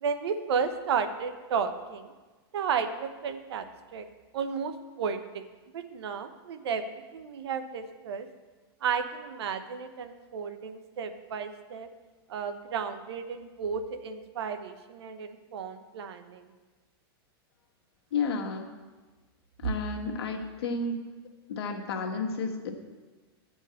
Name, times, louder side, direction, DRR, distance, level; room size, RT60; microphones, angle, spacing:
voice 1, 0.0-2.1 2.5-4.1 4.3-5.4 5.7-8.3 8.8-11.9 12.3-16.5, right 6 dB, 80° right, 9 dB, 0.9 m, -33 dB
voice 2, 18.1-18.7 19.6-20.9 21.5-22.7, left 4 dB, 80° left, 2 dB, 1.4 m, -31 dB
9.5 x 4.6 x 7.6 m, 1.3 s
supercardioid pair, 145°, 13 cm